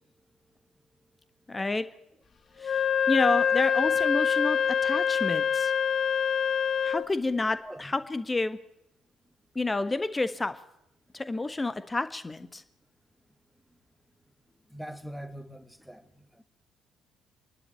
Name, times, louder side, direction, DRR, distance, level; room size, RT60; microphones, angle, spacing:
voice 1, 1.5-1.9 2.6-2.8 3.1-5.7 6.8-8.6 9.5-10.5 11.1-12.6, left 2 dB, 20° left, 12 dB, 1.5 m, -29 dB
Wind instrument woodwind instrument, 2.6-7.1, left 8 dB, 40° left, 1.0 m, -25 dB
voice 2, 14.7-16.0, right 1 dB, ahead, 9 dB, 2.0 m, -42 dB
27.0 x 11.5 x 8.6 m, 0.83 s
figure-of-eight pair, 50°, 0 cm